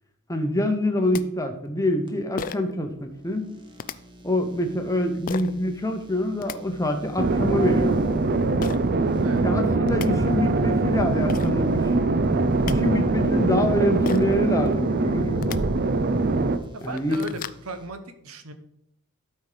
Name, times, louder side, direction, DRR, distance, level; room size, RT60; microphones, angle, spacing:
voice 1, 0.3-3.5 4.2-8.0 9.4-11.8 12.6-15.7 16.8-17.2, left 1 dB, 15° left, 5 dB, 0.9 m, -25 dB
sound 1, 0.8-0.9 1.1-1.2 2.4-2.7 3.8-4.0 5.3-5.5 6.2-6.6 8.6-8.8 9.6-9.7 9.9-10.1 11.0-11.1 11.3-11.5 12.3-12.8 14.1-14.4 15.3-15.6 16.2-16.3 16.7-17.6, left 6 dB, 40° left, 0.3 m, -34 dB
sound 2, 2.1-17.9, equal, 20° right, 1.2 m, -46 dB
sound 3, 7.2-16.6, right 3 dB, 45° right, 0.6 m, -22 dB
voice 2, 16.7-18.0 18.2-18.5, right 3 dB, 70° right, 9 dB, 1.0 m, -36 dB
12.0 x 4.4 x 5.0 m, 0.76 s
head